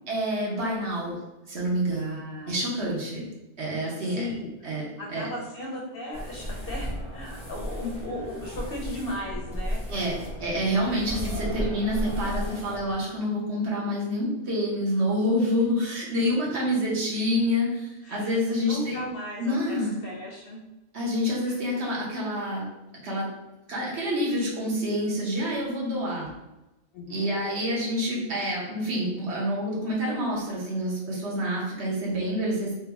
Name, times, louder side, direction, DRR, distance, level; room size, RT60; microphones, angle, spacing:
voice 1, 0.1-1.2 1.5-2.2 2.5-3.3 3.6-4.2 4.6-4.8 5.1-5.2 9.9-10.1 10.4-19.0 19.4-19.9 20.9-22.7 23.0-23.3 23.7-26.3 27.1-32.7, equal, 60° right, -4 dB, 1.2 m, -27 dB
voice 2, 1.9-2.6 3.8-4.7 5.0-9.8 18.0-20.6 21.4-21.6 26.9-27.4, left 1 dB, 60° left, -1 dB, 0.7 m, -37 dB
sound 1, 6.1-12.9, equal, 5° right, 0.7 m, -34 dB
3.4 x 2.1 x 3.3 m, 0.99 s
omnidirectional pair, 1.3 m